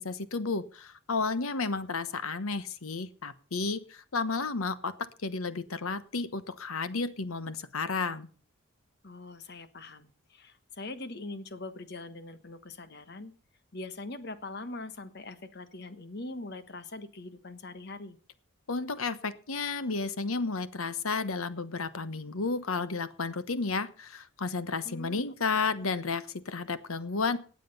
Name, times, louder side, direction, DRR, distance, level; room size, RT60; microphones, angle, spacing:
voice 1, 0.0-4.9 5.2-8.3 18.7-27.4, left 4 dB, 80° left, 13 dB, 1.1 m, -32 dB
voice 2, 9.0-13.3 13.7-18.2 24.8-25.2 25.5-25.9, left 2 dB, 50° left, 11 dB, 1.3 m, -42 dB
19.0 x 7.7 x 5.4 m, 0.39 s
head